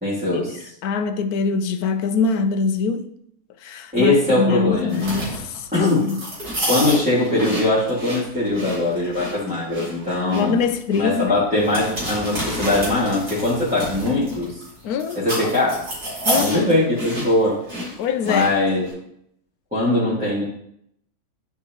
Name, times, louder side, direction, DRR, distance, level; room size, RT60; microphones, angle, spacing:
voice 1, 0.0-0.7 3.9-5.1 5.7-6.1 6.7-10.5 10.9-14.6 15.2-15.8 16.3-17.6 18.2-18.9 19.7-20.4, left 2 dB, 5° right, 2.2 m, -21 dB
voice 2, 0.8-3.1 3.6-6.2 10.3-11.4 14.8-15.3 16.3-16.6 18.0-18.5, left 5 dB, 80° left, 1.1 m, -23 dB
sound 1, 4.9-18.9, equal, 85° right, 3.4 m, -29 dB
11.0 x 4.7 x 3.0 m
omnidirectional pair, 1.6 m